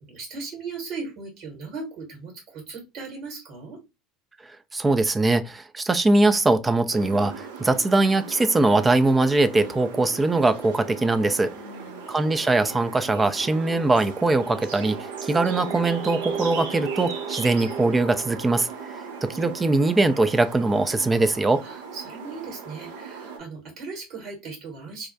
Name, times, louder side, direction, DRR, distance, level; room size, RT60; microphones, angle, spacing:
voice 1, 0.0-3.8 11.5-12.1 21.6-25.1, right 4 dB, 55° right, 1.3 m, -38 dB
voice 2, 4.7-11.5 12.1-18.7 19.2-21.6, right 2 dB, 20° right, 0.3 m, -21 dB
sound 1, 6.9-23.4, right 6 dB, 75° right, 0.5 m, -36 dB
2.4 x 2.1 x 2.5 m
hypercardioid pair, 75°, 0 cm